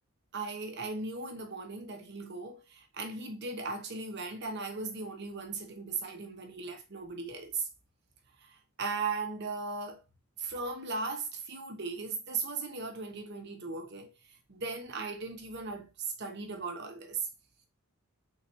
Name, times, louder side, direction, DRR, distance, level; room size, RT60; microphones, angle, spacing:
voice 1, 0.3-7.7 8.4-10.0 10.4-14.1 14.5-15.9 16.2-17.3, right 4 dB, 50° right, 0.9 m, -37 dB
3.7 x 3.2 x 2.8 m
head